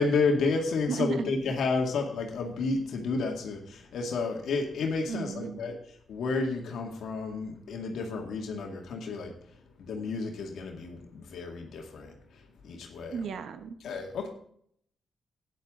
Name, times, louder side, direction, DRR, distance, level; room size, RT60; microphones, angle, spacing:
voice 1, 0.0-5.8 6.1-9.4 9.8-13.2 13.8-14.3, left 4 dB, 80° left, 1 dB, 2.1 m, -31 dB
voice 2, 0.9-1.3 5.1-5.6 13.1-13.8, right 6 dB, 75° right, 10 dB, 1.0 m, -34 dB
12.5 x 10.0 x 3.7 m, 0.66 s
cardioid pair, 90°, 0 cm